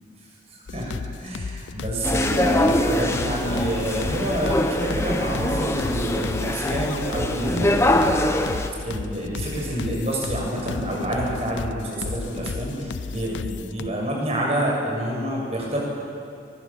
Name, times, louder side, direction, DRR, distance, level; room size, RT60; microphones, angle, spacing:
voice 1, 0.5-8.0 8.8-15.8, right 1 dB, 35° right, -3 dB, 7.5 m, -27 dB
sound 1, 0.7-13.9, left 4 dB, 85° left, 0.5 m, -34 dB
sound 2, 2.0-8.7, left 1 dB, 15° left, 1.2 m, -23 dB
25.5 x 23.0 x 7.5 m, 2.4 s
head